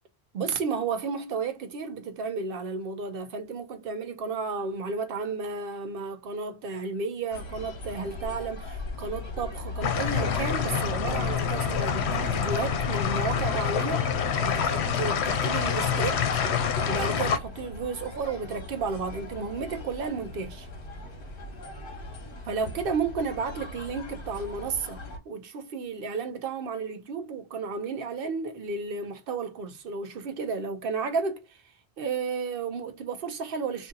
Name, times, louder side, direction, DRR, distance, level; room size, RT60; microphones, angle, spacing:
voice 1, 0.3-14.1 14.4-16.4 16.9-20.7 22.5-25.0 25.3-31.6 32.0-33.9, right 4 dB, 60° right, 0.8 m, -32 dB
sound 1, 7.3-25.2, left 1 dB, 55° left, 1.1 m, -39 dB
sound 2, 9.8-17.4, left 7 dB, 85° left, 0.9 m, -27 dB
2.7 x 2.7 x 3.7 m
omnidirectional pair, 1.1 m